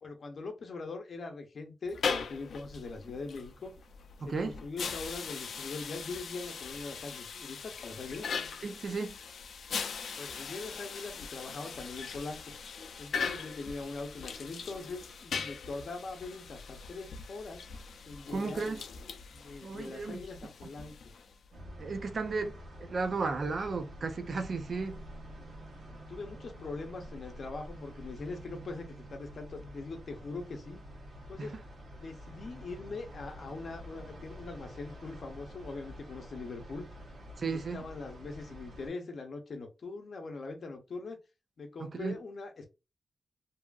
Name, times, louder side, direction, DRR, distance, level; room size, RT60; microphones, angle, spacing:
voice 1, 0.0-3.7 4.2-8.4 10.2-12.5 13.0-17.7 18.0-18.7 19.3-20.9 25.9-30.8 31.3-31.6 32.0-36.9 37.4-41.2 41.6-42.7, left 3 dB, 50° left, 0.7 m, -42 dB
sound 1, 1.9-21.5, left 5 dB, 75° left, 0.3 m, -40 dB
voice 2, 4.2-4.6 8.6-9.2 18.3-18.8 19.6-20.2 21.8-25.0 31.4-31.6 37.4-37.8 41.9-42.1, right 4 dB, 45° right, 0.4 m, -34 dB
sound 2, 21.5-38.9, equal, 65° right, 1.1 m, -48 dB
2.7 x 2.4 x 2.3 m
wide cardioid pair, 180°, 0 cm